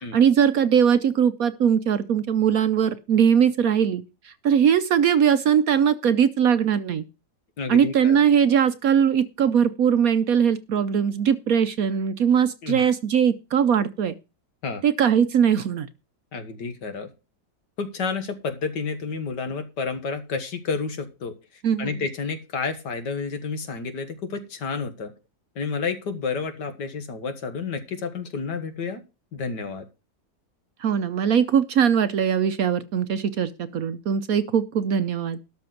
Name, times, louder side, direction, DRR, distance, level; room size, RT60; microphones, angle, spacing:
voice 1, 0.1-7.0 7.7-14.2 14.8-15.9 21.6-22.0 30.8-35.4, right 8 dB, 60° right, 12 dB, 1.0 m, -20 dB
voice 2, 7.6-8.2 12.6-12.8 14.6-14.8 16.3-17.1 17.8-25.1 25.6-29.0 29.3-29.9, left 5 dB, 70° left, 9 dB, 2.1 m, -30 dB
12.5 x 4.2 x 7.8 m, 0.29 s
omnidirectional pair, 1.9 m